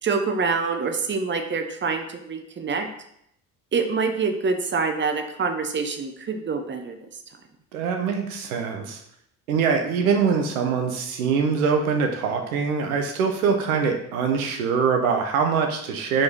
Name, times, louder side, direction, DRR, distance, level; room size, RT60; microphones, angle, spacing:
voice 1, 0.0-2.9 3.7-7.0 9.7-9.9, right 4 dB, 25° right, 6 dB, 0.9 m, -26 dB
voice 2, 7.7-9.0 9.5-16.2, right 5 dB, 80° right, 4 dB, 0.9 m, -23 dB
4.8 x 4.4 x 4.6 m, 0.74 s
hypercardioid pair, 55°, 43 cm